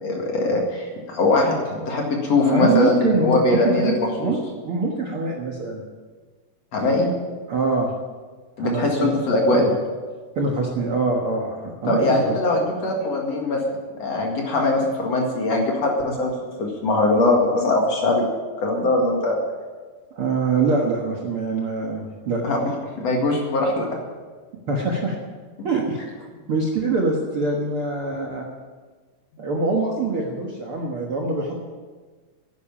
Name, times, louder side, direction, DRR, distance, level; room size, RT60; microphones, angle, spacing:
voice 1, 0.0-3.9 4.2-4.3 6.7-7.1 8.6-9.7 11.9-13.6 14.0-16.3 16.6-18.2 18.6-19.4 22.4-22.6 23.0-23.9, left 2 dB, 50° left, 0 dB, 2.9 m, -21 dB
voice 2, 2.5-5.8 7.5-7.9 8.6-9.1 9.5-9.7 10.4-12.4 20.1-22.4 24.7-25.2 25.6-26.0 26.5-28.5 29.4-31.6, right 3 dB, 50° right, -1 dB, 1.8 m, -24 dB
10.5 x 10.0 x 8.7 m, 1.4 s
omnidirectional pair, 4.0 m